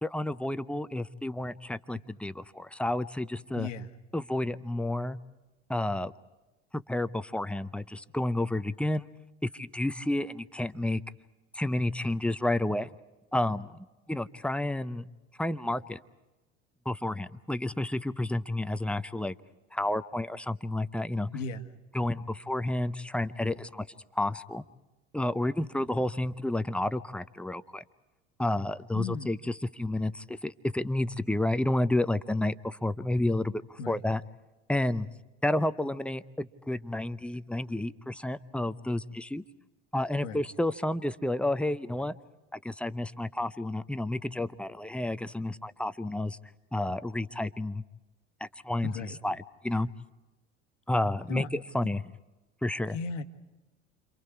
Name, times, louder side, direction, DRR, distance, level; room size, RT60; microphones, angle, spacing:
voice 1, 0.0-3.7 4.1-5.2 5.7-6.1 6.9-9.1 9.4-11.0 11.5-12.9 13.3-15.1 15.4-16.0 16.9-19.3 19.7-21.3 21.9-23.9 24.1-24.6 25.1-27.8 28.4-34.2 34.7-35.1 35.4-39.4 39.9-42.1 42.6-46.4 46.7-47.8 48.4-48.9 49.2-49.9 50.9-52.0 52.6-53.0, left 1 dB, 5° left, 12 dB, 0.7 m, -30 dB
voice 2, 3.5-3.9 21.3-21.7 28.9-29.4 33.8-34.0 40.2-40.4 48.8-49.2 49.7-49.8 51.3-51.5 52.9-53.2, left 4 dB, 75° left, 8 dB, 1.5 m, -36 dB
29.5 x 26.5 x 4.7 m, 1.1 s
hypercardioid pair, 75°, 38 cm